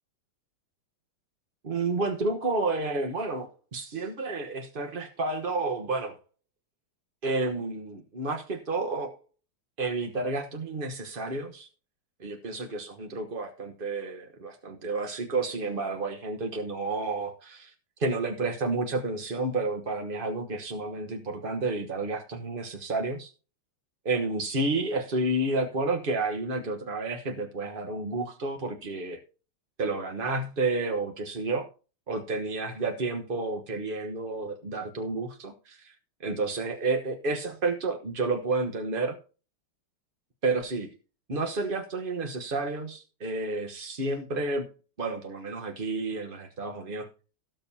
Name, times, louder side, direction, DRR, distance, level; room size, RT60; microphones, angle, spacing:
voice 1, 1.6-6.2 7.2-9.2 9.8-11.7 12.2-17.7 18.0-23.3 24.0-29.2 29.8-31.7 32.1-35.9 36.2-39.2 40.4-40.9 41.3-44.7 45.0-47.1, right 3 dB, 35° right, 4 dB, 0.9 m, -30 dB
18.0 x 7.0 x 2.7 m, 0.35 s
omnidirectional pair, 2.3 m